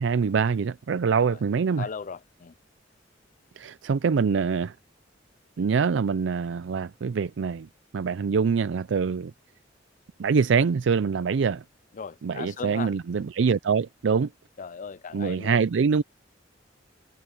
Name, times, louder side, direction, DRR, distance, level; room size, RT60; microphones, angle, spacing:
voice 1, 0.0-1.9 3.6-4.7 5.6-9.3 10.2-11.6 12.2-14.3 15.1-16.0, right 5 dB, 70° right, 0.4 m, -24 dB
voice 2, 1.8-2.5 11.9-12.9 14.6-15.6, left 5 dB, 40° left, 0.4 m, -37 dB
head